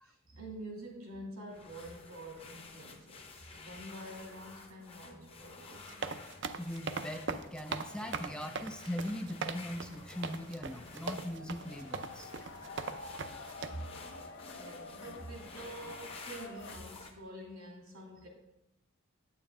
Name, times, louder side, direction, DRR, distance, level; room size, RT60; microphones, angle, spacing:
voice 1, 0.0-5.9 13.6-13.9 14.6-18.3, right 1 dB, 85° right, 0 dB, 2.6 m, -47 dB
sound 1, 1.5-17.1, left 4 dB, 25° left, 0.8 m, -52 dB
sound 2, 3.0-16.8, left 3 dB, 50° left, 1.4 m, -52 dB
sound 3, 5.7-13.7, right 5 dB, 55° right, 0.5 m, -39 dB
voice 2, 6.6-12.3 12.9-13.0, equal, 5° left, 5 dB, 0.4 m, -40 dB
9.1 x 8.6 x 3.7 m, 0.87 s
head